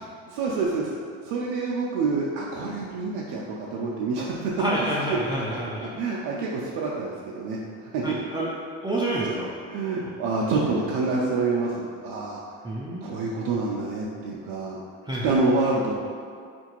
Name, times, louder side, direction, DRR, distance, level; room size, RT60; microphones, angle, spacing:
voice 1, 0.3-0.9 1.2-4.5 5.8-8.3 8.9-9.0 9.7-12.4 13.0-14.8 15.2-16.1, right 3 dB, 65° right, -4 dB, 0.5 m, -27 dB
voice 2, 4.6-5.9 8.0-8.5 8.8-9.5 10.0-10.1 12.6-13.1 15.0-15.3, right 1 dB, 10° right, -6 dB, 0.4 m, -28 dB
3.7 x 2.5 x 2.9 m, 2.2 s
supercardioid pair, 70°, 39 cm